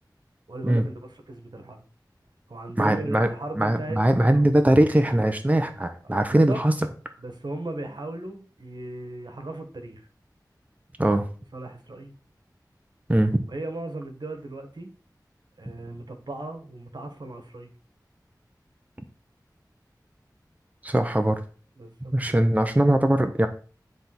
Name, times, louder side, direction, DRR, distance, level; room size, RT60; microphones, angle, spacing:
voice 1, 0.5-1.8 2.5-4.5 6.3-6.6 7.2-10.1 11.5-12.1 13.5-14.9 15.6-17.7 21.8-22.5, right 2 dB, 75° right, 5 dB, 1.5 m, -37 dB
voice 2, 2.8-3.3 3.6-6.7 11.0-11.3 13.1-13.4 20.8-21.4 22.1-23.5, right 1 dB, 20° right, 6 dB, 1.0 m, -21 dB
10.5 x 3.5 x 6.0 m, 0.40 s
wide cardioid pair, 55°, 7 cm